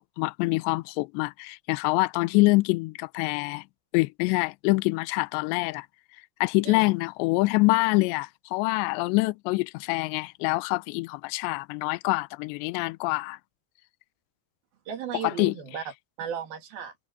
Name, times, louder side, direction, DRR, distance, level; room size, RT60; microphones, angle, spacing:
voice 1, 0.0-3.6 3.9-5.9 6.4-13.4 15.2-15.5, left 24 dB, 80° left, 2.8 m, -25 dB
voice 2, 14.9-15.8 16.2-16.9, right 7 dB, 60° right, 4.0 m, -35 dB
omnidirectional pair, 5.3 m